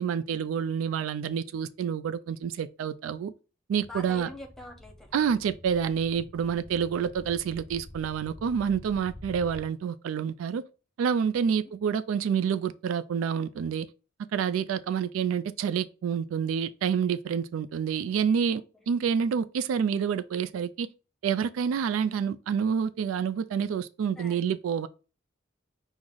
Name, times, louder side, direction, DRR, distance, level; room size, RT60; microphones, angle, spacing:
voice 1, 0.0-3.3 3.7-4.3 5.1-10.6 11.0-13.9 14.3-18.6 18.9-20.9 21.2-24.9, right 7 dB, 85° right, 0.3 m, -28 dB
voice 2, 3.8-5.1 11.4-11.7 18.5-18.8 24.2-24.4, left 1 dB, ahead, 0.8 m, -44 dB
sound 1, 3.8-9.7, left 1 dB, 25° right, 1.4 m, -48 dB
6.1 x 2.0 x 3.7 m
head